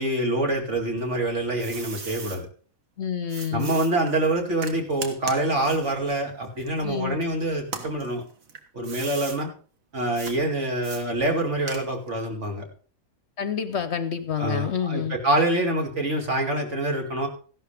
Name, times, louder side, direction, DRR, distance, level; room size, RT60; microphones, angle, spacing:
voice 1, 0.0-2.5 3.5-8.2 8.7-9.5 9.9-12.6 14.4-17.3, right 1 dB, 55° right, 2 dB, 2.8 m, -26 dB
sound 1, 1.0-2.4 3.3-7.2 7.6-9.4 10.2-10.4 10.8-12.2, right 5 dB, 70° right, 1.9 m, -39 dB
voice 2, 3.0-3.7 6.8-7.2 13.4-15.2, left 8 dB, 55° left, 11 dB, 0.9 m, -28 dB
14.5 x 11.5 x 3.4 m, 0.41 s
omnidirectional pair, 1.5 m